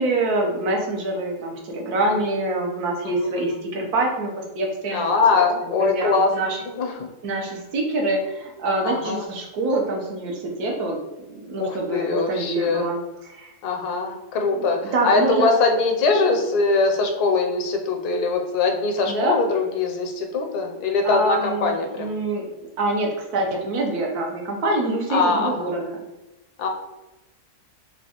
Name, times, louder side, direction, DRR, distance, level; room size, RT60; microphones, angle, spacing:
voice 1, 0.0-5.1 5.3-5.5 5.8-6.6 7.2-11.0 11.3-13.5 14.5-15.5 19.0-19.4 21.0-22.5 22.8-26.0, right 2 dB, 75° right, 0 dB, 1.2 m, -25 dB
voice 2, 3.0-3.4 4.9-7.1 8.8-9.2 11.6-12.9 13.6-22.1 25.1-25.5 26.6-26.7, left 3 dB, 80° left, 3 dB, 1.1 m, -22 dB
4.3 x 2.3 x 2.8 m, 1.0 s
omnidirectional pair, 1.7 m